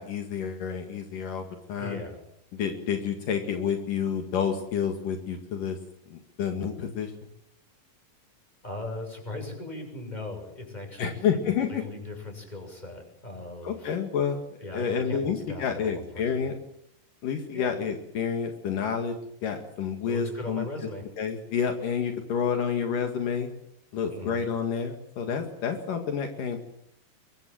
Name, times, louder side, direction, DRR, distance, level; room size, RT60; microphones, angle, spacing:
voice 1, 0.0-2.0 2.5-5.8 6.1-7.1 11.0-11.8 13.6-14.4 14.7-16.5 17.2-19.2 19.4-20.6 21.2-23.5 23.9-26.6, left 7 dB, 70° left, 5 dB, 3.5 m, -29 dB
voice 2, 1.7-2.2 8.6-11.3 11.7-14.0 14.6-16.5 17.5-17.8 20.1-21.0 24.1-24.4, left 2 dB, 10° left, 4 dB, 7.0 m, -38 dB
24.5 x 22.5 x 7.7 m, 0.72 s
omnidirectional pair, 4.0 m